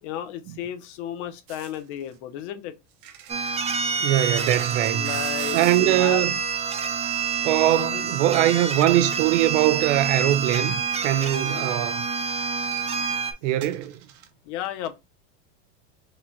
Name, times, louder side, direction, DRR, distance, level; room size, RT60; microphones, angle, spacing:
voice 1, 0.0-2.7 4.9-6.3 7.8-8.1 11.4-11.7 14.5-15.0, left 11 dB, 65° left, 0.9 m, -33 dB
sound 1, 1.5-2.1 2.9-5.9 7.5-7.6 9.2-9.3 9.5-9.9 10.4-10.5 10.9-11.1 11.3-11.8 12.1-12.8 13.6-14.3, right 10 dB, 50° right, 0.9 m, -43 dB
sound 2, 3.3-13.3, right 6 dB, 15° right, 0.6 m, -27 dB
voice 2, 4.0-5.1 5.5-6.3 7.4-12.0 13.4-14.0, right 13 dB, 75° right, 0.6 m, -22 dB
4.9 x 2.8 x 2.2 m
supercardioid pair, 130°, 36 cm